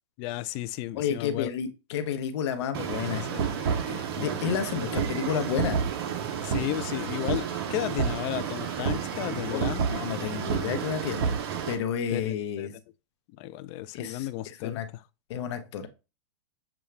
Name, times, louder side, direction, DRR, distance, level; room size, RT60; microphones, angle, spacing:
voice 1, 0.2-1.5 2.8-4.4 6.4-9.9 12.1-12.2 12.6-12.7 13.4-14.8, left 15 dB, 35° left, 0.4 m, -34 dB
voice 2, 0.9-3.3 3.9-5.8 9.3-11.3 11.7-12.7 13.9-14.9 15.3-15.9, left 8 dB, 65° left, 0.8 m, -31 dB
sound 1, 2.7-11.7, right 7 dB, 55° right, 0.9 m, -30 dB
6.9 x 2.4 x 3.2 m
supercardioid pair, 145°, 15 cm